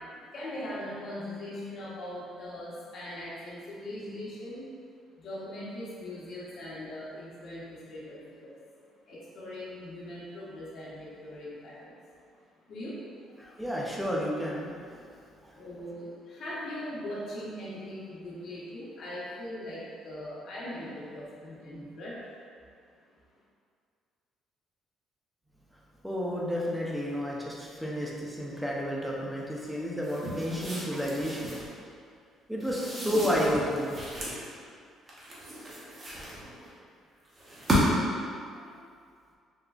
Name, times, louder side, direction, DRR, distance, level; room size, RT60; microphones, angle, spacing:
voice 1, 0.3-4.6 5.2-8.5 9.1-11.9 12.7-13.0 13.3-13.4 15.5-22.1, left 1 dB, 60° left, -7 dB, 1.0 m, -40 dB
voice 2, 13.4-15.0 15.4-15.5 26.0-31.6 32.5-34.0 38.6-38.8, equal, ahead, -4 dB, 0.5 m, -31 dB
sound 1, 30.0-31.7 32.6-34.4 35.1-36.7 37.4-38.2, equal, 30° right, 0.8 m, -32 dB
3.7 x 2.2 x 2.3 m, 2.2 s
cardioid pair, 100°, 0 cm